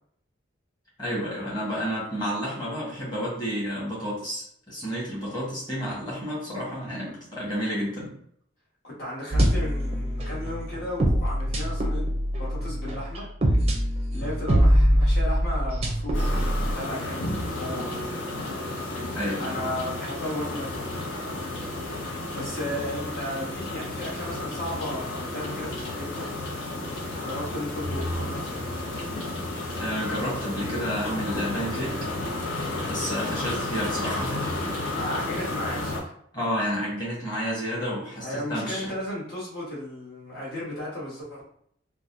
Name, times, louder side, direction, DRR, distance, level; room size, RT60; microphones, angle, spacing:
voice 1, 1.0-8.1 19.1-19.6 29.8-32.0 32.9-34.3 36.3-38.9, equal, 20° left, -7 dB, 1.5 m, -30 dB
voice 2, 8.8-12.0 12.4-13.3 14.1-18.0 19.4-21.4 22.3-26.4 27.2-28.6 34.9-36.1 38.2-41.4, left 1 dB, 50° left, -6 dB, 1.4 m, -35 dB
sound 1, 9.3-16.7, equal, 30° right, 0.5 m, -23 dB
sound 2, 16.1-36.0, left 2 dB, 80° left, 0.8 m, -32 dB
3.9 x 2.2 x 2.6 m, 0.66 s
head